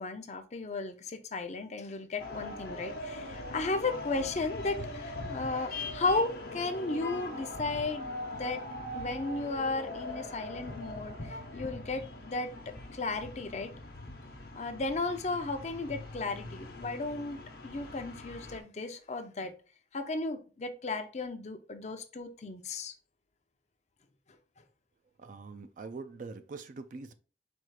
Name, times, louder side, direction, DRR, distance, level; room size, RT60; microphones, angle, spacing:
voice 1, 0.0-8.6 8.9-13.7 14.5-19.5 19.9-22.9, left 3 dB, 40° left, 0.6 m, -35 dB
sound 1, 2.2-18.6, left 1 dB, 60° left, 0.9 m, -42 dB
voice 2, 25.2-27.1, right 4 dB, 45° right, 0.3 m, -43 dB
4.4 x 2.4 x 4.7 m
head